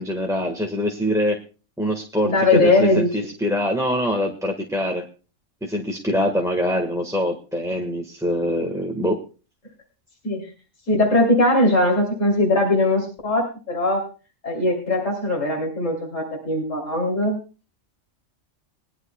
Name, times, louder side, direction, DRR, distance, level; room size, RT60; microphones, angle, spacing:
voice 1, 0.0-1.4 1.8-5.1 5.6-9.2, equal, 5° right, 2 dB, 1.4 m, -24 dB
voice 2, 2.2-3.1 10.2-10.4 10.9-14.0 14.4-17.4, left 2 dB, 70° left, -1 dB, 3.5 m, -20 dB
22.0 x 11.0 x 2.3 m, 0.33 s
omnidirectional pair, 1.3 m